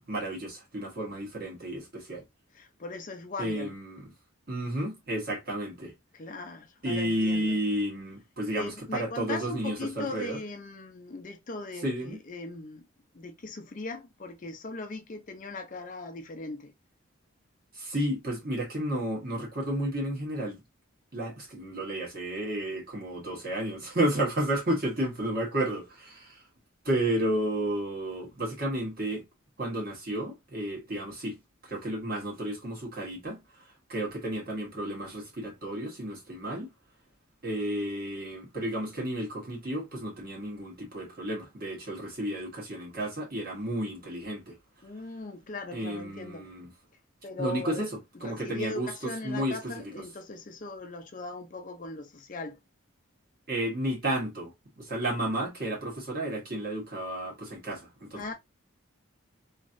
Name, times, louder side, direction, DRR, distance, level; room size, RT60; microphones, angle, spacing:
voice 1, 0.1-2.2 3.4-4.1 4.5-5.9 6.8-10.4 11.8-12.2 17.7-20.6 21.1-26.4 26.8-29.2 29.6-31.4 31.6-33.4 33.9-36.7 37.4-44.5 45.7-46.7 47.4-47.9 48.2-48.9 49.2-50.0 53.5-58.3, right 1 dB, 45° right, 1.4 m, -32 dB
voice 2, 2.5-3.7 6.1-7.6 8.5-12.8 13.1-16.7 44.8-46.5 47.2-47.8 48.2-52.6 58.1-58.3, left 2 dB, 40° left, 0.5 m, -39 dB
3.0 x 2.8 x 2.5 m
head